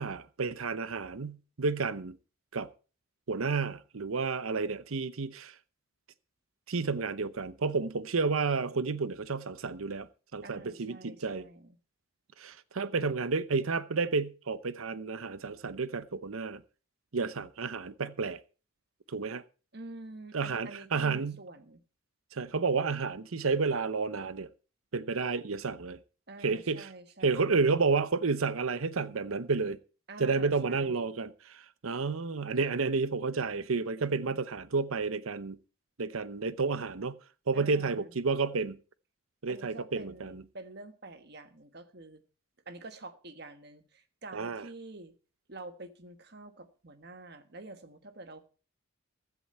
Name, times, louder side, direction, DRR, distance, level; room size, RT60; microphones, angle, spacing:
voice 1, 0.0-2.2 2.5-2.7 3.3-5.5 6.7-10.1 10.3-11.5 12.4-16.6 17.1-18.4 19.1-19.4 20.3-21.4 22.3-24.5 24.9-26.0 26.4-26.9 27.2-29.8 30.2-35.6 36.0-37.2 37.5-38.8 39.4-40.4 44.3-44.6, right 4 dB, 80° right, 0.8 m, -31 dB
voice 2, 10.4-11.8 19.7-21.8 26.3-27.6 30.1-31.1 34.1-34.4 37.5-38.1 39.5-42.2 42.6-45.1 45.5-48.4, right 2 dB, 50° right, 1.3 m, -47 dB
15.5 x 11.0 x 4.3 m
head